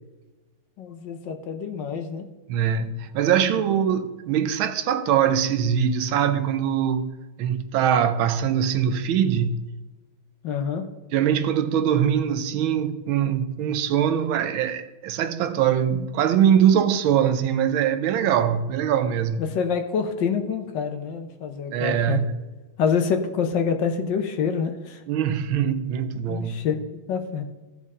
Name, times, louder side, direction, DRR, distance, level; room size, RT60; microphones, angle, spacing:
voice 1, 0.8-2.3 10.4-10.9 19.4-22.2 22.8-25.0 26.3-26.8 27.1-27.4, left 6 dB, 65° left, 1.4 m, -26 dB
voice 2, 2.5-9.7 11.1-19.4 21.7-22.5 25.1-26.7, right 9 dB, 80° right, 1.5 m, -22 dB
15.5 x 5.5 x 3.6 m
omnidirectional pair, 2.3 m